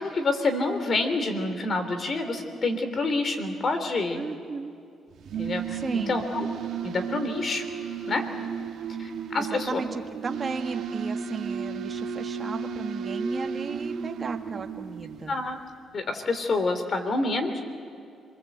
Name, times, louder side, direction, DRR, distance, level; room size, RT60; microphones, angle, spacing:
voice 1, 0.0-4.2 5.4-6.5 6.8-7.6 8.1-8.2 9.0-9.8 15.3-15.6 15.9-17.6, left 3 dB, 45° left, 8 dB, 3.4 m, -27 dB
voice 2, 4.1-4.7 5.7-6.2 9.4-15.4, right 4 dB, 35° right, 4 dB, 1.6 m, -35 dB
sound 1, 5.1-15.6, right 6 dB, 70° right, 1.9 m, -34 dB
27.0 x 21.5 x 8.0 m, 2.5 s
cardioid pair, 90°, 0 cm